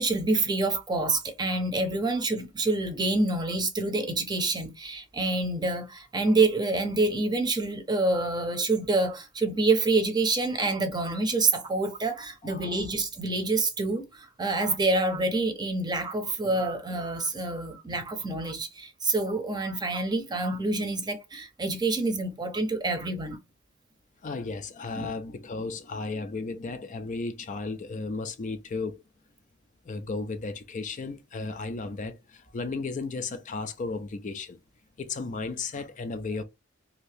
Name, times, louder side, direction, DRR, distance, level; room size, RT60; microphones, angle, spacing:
voice 1, 0.0-23.4 25.0-25.1, right 2 dB, 20° right, 0.7 m, -27 dB
voice 2, 12.4-12.8 24.2-29.0 29.9-34.6 35.0-36.4, left 3 dB, 40° left, 0.4 m, -34 dB
2.8 x 2.7 x 3.2 m
head